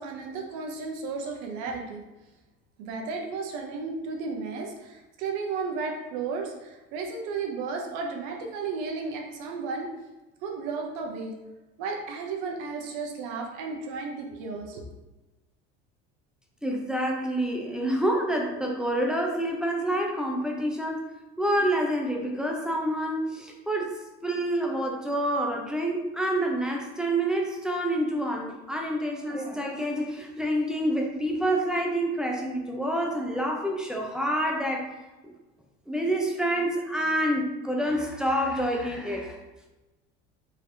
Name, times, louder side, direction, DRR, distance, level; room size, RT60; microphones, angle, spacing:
voice 1, 0.0-2.0 2.8-9.9 10.4-11.3 11.8-14.8, right 4 dB, 75° right, 1 dB, 0.8 m, -33 dB
voice 2, 16.6-21.1 21.4-24.0 24.2-34.9 35.2-35.3 35.9-39.4, right 1 dB, ahead, 0 dB, 0.6 m, -27 dB
3.8 x 3.3 x 2.7 m, 1.1 s
supercardioid pair, 100°, 30 cm